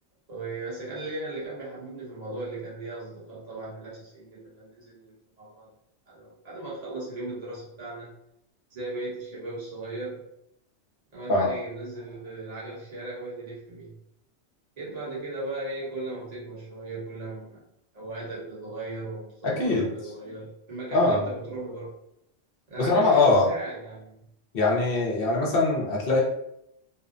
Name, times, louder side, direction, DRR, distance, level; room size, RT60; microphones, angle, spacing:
voice 1, 0.3-5.7 6.1-8.1 8.7-10.2 11.1-13.9 14.8-17.6 17.9-21.9 22.7-24.2 25.2-25.3, right 2 dB, 35° right, -7 dB, 1.0 m, -37 dB
voice 2, 19.4-19.9 20.9-21.3 22.8-23.5 24.5-26.2, left 3 dB, 60° left, -3 dB, 0.7 m, -22 dB
2.7 x 2.1 x 2.4 m, 0.77 s
omnidirectional pair, 1.2 m